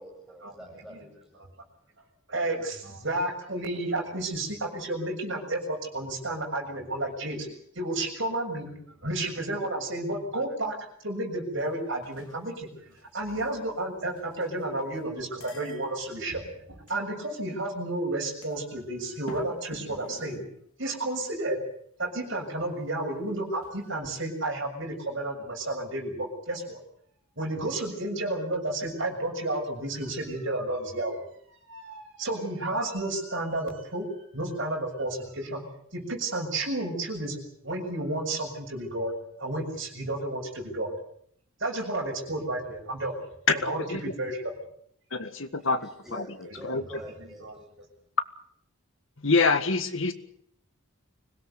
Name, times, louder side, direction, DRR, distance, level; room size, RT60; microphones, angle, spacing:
voice 1, 0.0-1.5 45.6-47.5, equal, ahead, 0 dB, 7.7 m, -46 dB
voice 2, 2.3-7.5 7.8-8.7 9.0-10.8 11.0-20.4 20.8-21.6 22.0-26.8 27.4-31.2 31.7-35.6 35.9-37.4 37.6-39.1 39.4-40.9 41.6-43.1 43.5-44.5 46.9-47.0 47.4-47.7, right 2 dB, 55° right, 1 dB, 7.1 m, -31 dB
sound 1, 11.6-12.6 12.9-14.6 15.0-15.1 15.4-17.0 17.5-17.7 18.2-19.0 19.3-20.6 21.0-21.1 23.6-23.8, left 1 dB, 80° left, 2.9 m, -47 dB
voice 3, 45.1-46.2 46.6-46.8 49.2-50.1, left 4 dB, 60° left, 9 dB, 1.8 m, -25 dB
25.0 x 17.5 x 8.2 m, 0.67 s
head